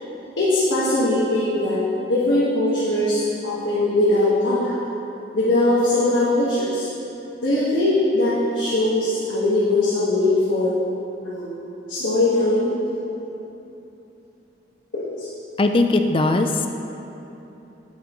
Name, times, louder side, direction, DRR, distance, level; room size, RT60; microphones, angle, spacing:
voice 1, 0.4-1.8 2.1-4.7 5.3-6.9 7.4-10.7 11.2-11.5 11.9-12.7 14.9-15.3, left 2 dB, 85° left, -9 dB, 1.4 m, -20 dB
voice 2, 15.6-16.7, left 2 dB, 30° left, 6 dB, 0.3 m, -19 dB
9.3 x 8.4 x 3.0 m, 3.0 s
head